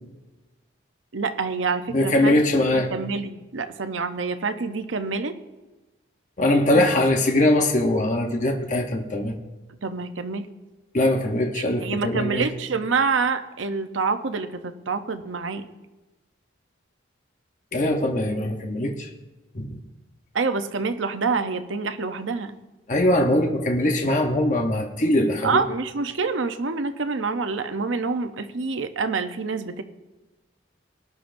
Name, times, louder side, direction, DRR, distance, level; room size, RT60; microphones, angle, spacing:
voice 1, 1.1-5.4 6.7-6.9 9.8-10.5 11.5-15.7 20.3-22.5 25.4-29.8, right 4 dB, 90° right, 9 dB, 0.7 m, -27 dB
voice 2, 1.9-2.9 6.4-9.4 10.9-12.5 17.7-19.1 19.5-19.8 22.9-25.6, left 1 dB, 40° left, 2 dB, 0.9 m, -21 dB
19.0 x 11.0 x 2.6 m, 1.1 s
head